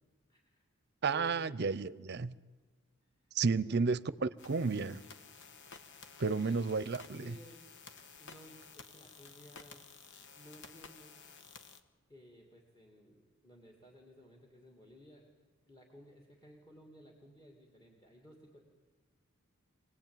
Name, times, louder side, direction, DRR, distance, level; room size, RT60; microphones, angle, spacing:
voice 1, 0.3-0.6 1.1-1.5 3.4-3.8 6.1-6.6 7.2-7.7 8.2-9.8 10.3-11.2 12.1-15.3 15.7-18.6, equal, 20° left, 2.7 m, -56 dB
voice 2, 1.0-2.3 3.3-5.0 6.2-7.3, right 4 dB, 55° right, 0.7 m, -32 dB
sound 1, 4.4-11.8, left 5 dB, 60° left, 1.5 m, -54 dB
25.5 x 18.5 x 9.1 m
head